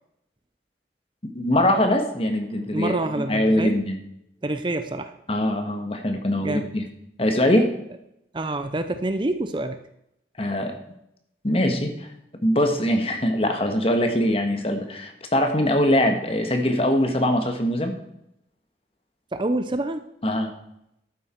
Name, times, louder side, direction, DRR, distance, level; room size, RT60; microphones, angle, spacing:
voice 1, 1.2-3.0 3.3-4.0 5.3-6.8 7.2-7.7 10.4-10.8 11.4-12.1 12.4-17.9 20.2-20.5, left 1 dB, 30° left, 5 dB, 1.6 m, -22 dB
voice 2, 2.7-3.8 4.4-5.1 6.4-6.7 8.3-9.8 19.3-20.0, right 2 dB, 25° right, 9 dB, 0.6 m, -27 dB
12.0 x 9.2 x 4.5 m, 0.80 s
head